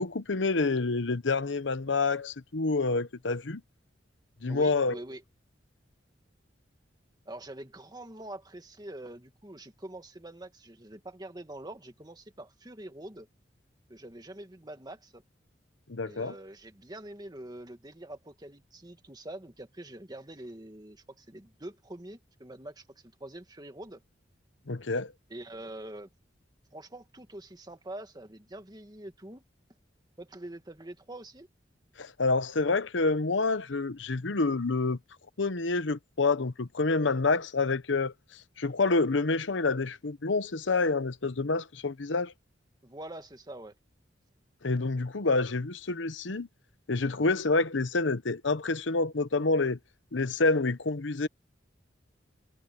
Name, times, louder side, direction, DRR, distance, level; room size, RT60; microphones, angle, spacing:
voice 1, 0.0-3.6 4.4-5.0 15.9-16.3 24.7-25.1 32.0-35.0 35.4-38.1 38.6-42.3 44.6-46.5 46.9-49.8 50.1-51.3, left 3 dB, 85° left, 1.0 m, -28 dB
voice 2, 4.5-5.2 7.3-13.3 13.9-15.2 16.1-22.9 23.2-24.0 25.3-26.1 26.7-29.4 30.2-31.5 42.8-43.8, right 1 dB, 20° right, 1.8 m, -45 dB
head